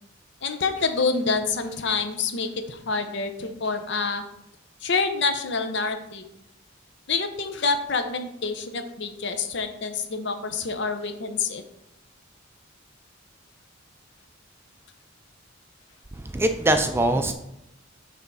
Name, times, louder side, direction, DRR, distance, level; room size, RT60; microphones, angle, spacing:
voice 1, 0.4-4.2 4.8-6.3 7.1-11.6, left 4 dB, 60° left, 8 dB, 0.7 m, -27 dB
voice 2, 16.1-17.3, right 1 dB, 10° right, 7 dB, 0.4 m, -22 dB
6.2 x 3.5 x 5.5 m, 0.80 s
head